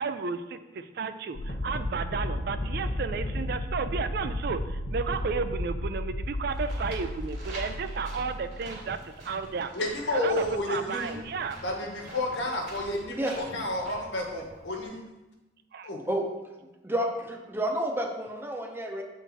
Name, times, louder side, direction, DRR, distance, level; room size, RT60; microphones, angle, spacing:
voice 1, 0.0-9.7 10.1-11.6 15.7-15.9, right 5 dB, 60° right, 10 dB, 0.4 m, -33 dB
sound 1, 1.3-9.0, left 1 dB, 55° left, 0.8 m, -33 dB
sound 2, 6.5-14.8, right 2 dB, 80° right, 2.0 m, -45 dB
voice 2, 9.7-11.1 11.6-15.0 15.8-16.0, left 1 dB, 85° left, 0 dB, 1.2 m, -31 dB
voice 3, 16.8-19.0, right 1 dB, 15° right, 2 dB, 0.7 m, -30 dB
7.1 x 3.8 x 4.1 m, 1.0 s
head